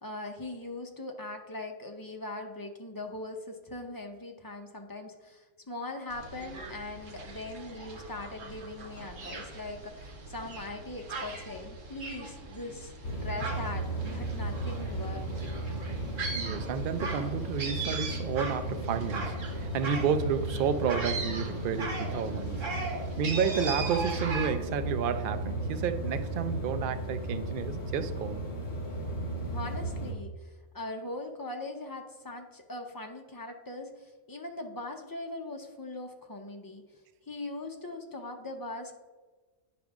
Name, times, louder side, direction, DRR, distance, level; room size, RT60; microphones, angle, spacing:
voice 1, 0.0-12.9 13.2-15.5 29.5-36.8 37.3-38.9, left 2 dB, 25° left, 0.5 m, -40 dB
sound 1, 6.1-24.5, right 3 dB, 80° right, 1.5 m, -39 dB
sound 2, 13.0-30.1, right 1 dB, 55° left, 1.8 m, -35 dB
voice 2, 16.3-22.6 23.2-28.5, right 7 dB, 60° right, 0.6 m, -31 dB
10.0 x 5.1 x 3.5 m
omnidirectional pair, 1.3 m